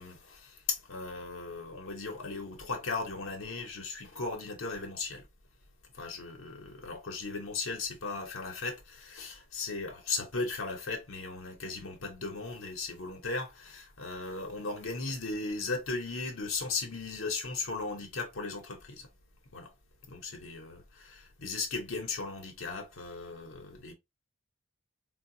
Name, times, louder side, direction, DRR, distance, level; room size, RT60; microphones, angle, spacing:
voice 1, 0.0-5.3 5.9-19.1 19.5-19.7 20.1-23.9, left 3 dB, 70° left, 0.8 m, -37 dB
3.8 x 2.2 x 2.6 m
head